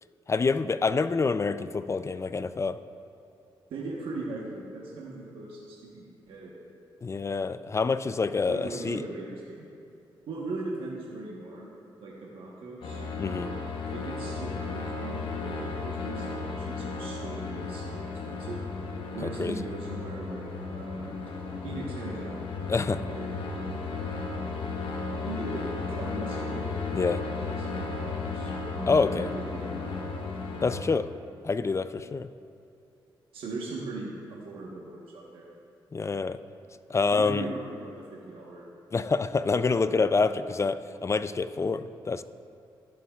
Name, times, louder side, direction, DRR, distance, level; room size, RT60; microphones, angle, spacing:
voice 1, 0.3-2.8 7.0-9.0 13.2-13.5 19.4-19.5 22.7-23.0 26.9-27.2 28.9-29.3 30.6-31.1 31.4-32.3 35.9-36.4 36.9-37.5 38.9-42.2, left 4 dB, 30° left, 13 dB, 0.4 m, -27 dB
voice 2, 3.7-6.5 8.5-9.6 10.3-11.7 12.0-18.6 19.1-21.1 21.6-22.5 22.9-23.4 23.9-24.3 25.2-25.6 25.9-26.7 27.0-29.1 29.5-30.0 33.3-35.5 37.1-38.7 39.8-40.3, right 3 dB, 80° right, -4 dB, 1.2 m, -39 dB
sound 1, 12.8-30.8, left 4 dB, 75° left, 1.0 m, -34 dB
15.0 x 6.9 x 2.4 m, 2.7 s
supercardioid pair, 55°, 9 cm